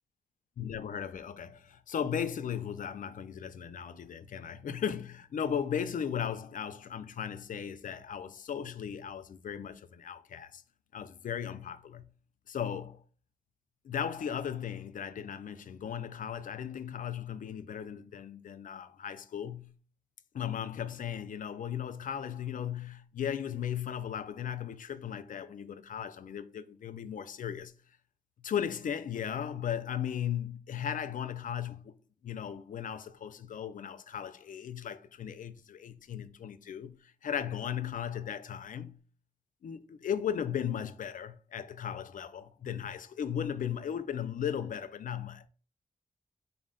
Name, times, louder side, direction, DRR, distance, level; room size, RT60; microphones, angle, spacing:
voice 1, 0.6-10.6 10.9-12.1 12.5-13.0 13.8-19.7 20.3-27.7 28.4-31.9 32.2-39.0 39.6-45.5, left 8 dB, 70° left, 0.4 m, -36 dB
4.1 x 2.1 x 3.7 m
wide cardioid pair, 105°, 14 cm